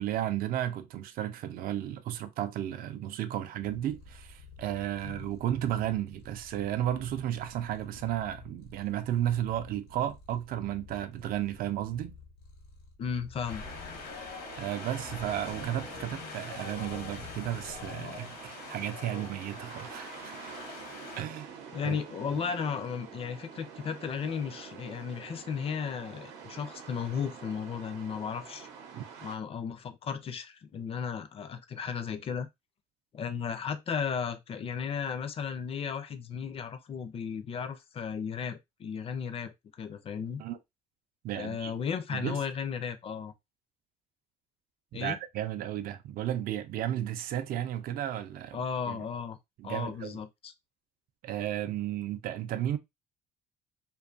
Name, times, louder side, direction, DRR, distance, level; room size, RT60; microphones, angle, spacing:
voice 1, 0.0-12.2 14.6-20.3 21.2-21.5 21.8-22.0 28.9-29.0 40.4-40.6 41.2-41.7 42.1-42.4 44.9-49.0 49.6-50.2 51.2-52.8, right 11 dB, 60° right, 0.4 m, -33 dB
Purr, 3.6-14.0, left 4 dB, 85° left, 1.0 m, -52 dB
voice 2, 13.0-13.7 21.7-28.7 29.2-32.5 33.1-40.4 41.3-43.3 44.9-45.2 48.5-49.4 49.6-50.5, left 6 dB, 35° left, 0.4 m, -35 dB
Wind, 13.5-21.2, left 5 dB, 60° left, 0.8 m, -43 dB
sound 1, 13.6-29.4, right 6 dB, 90° right, 0.7 m, -47 dB
2.5 x 2.3 x 2.4 m
cardioid pair, 110°, 17 cm